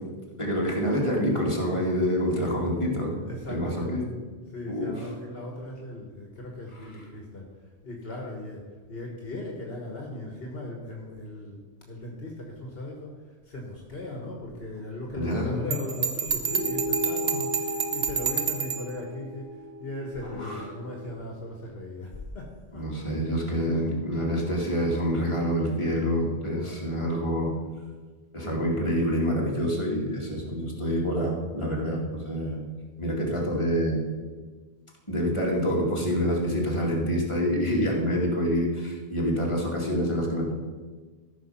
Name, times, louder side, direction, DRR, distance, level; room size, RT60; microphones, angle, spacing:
voice 1, 0.4-3.2 3.5-4.0 4.7-4.9 15.2-15.7 20.3-20.6 22.7-27.5 28.3-32.6 33.0-34.0 35.1-40.5, equal, 25° left, -3 dB, 2.4 m, -27 dB
voice 2, 3.1-4.0 4.5-22.8 26.4-26.8, left 1 dB, 65° left, 0 dB, 1.7 m, -38 dB
Bell, 15.7-18.9, right 7 dB, 85° right, 1.2 m, -29 dB
sound 1, 16.4-21.2, left 1 dB, 20° right, 0.8 m, -35 dB
14.0 x 5.9 x 5.7 m, 1.4 s
omnidirectional pair, 1.1 m